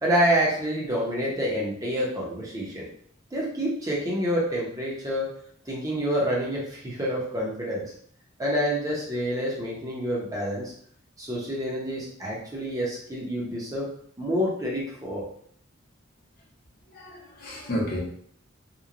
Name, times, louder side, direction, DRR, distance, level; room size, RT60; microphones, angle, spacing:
voice 1, 0.0-2.9 3.3-5.3 5.7-7.8 8.4-10.7 11.2-13.9 14.2-15.2, equal, 15° right, -4 dB, 0.6 m, -27 dB
voice 2, 16.9-18.0, equal, 45° left, -3 dB, 0.7 m, -31 dB
2.9 x 2.1 x 2.4 m, 0.63 s
head